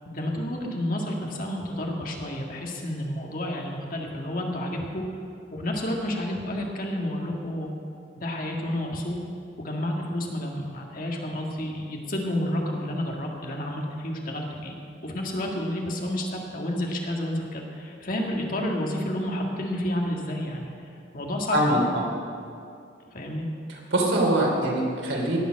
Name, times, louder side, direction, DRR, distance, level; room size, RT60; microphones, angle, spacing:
voice 1, 0.1-5.0 5.5-7.7 8.2-9.2 9.6-14.8 15.0-20.7 21.1-21.8 23.1-23.5, left 1 dB, 45° left, 0 dB, 1.8 m, -30 dB
voice 2, 21.5-22.1 23.9-25.4, right 1 dB, 90° right, -1 dB, 3.0 m, -23 dB
18.5 x 7.0 x 6.4 m, 2.4 s
head